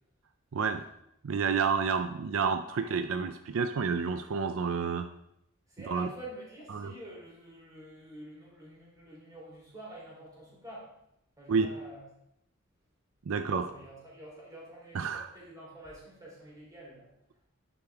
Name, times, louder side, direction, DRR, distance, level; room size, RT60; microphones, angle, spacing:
voice 1, 0.5-0.8 1.2-5.1 5.9-6.1 6.7-6.9 11.5-11.7 13.3-13.7 14.9-15.3, right 5 dB, 75° right, 8 dB, 0.5 m, -29 dB
voice 2, 5.7-10.9 11.4-12.0 13.4-17.1, right 1 dB, 20° right, -4 dB, 3.3 m, -48 dB
11.5 x 5.2 x 3.5 m, 0.80 s
head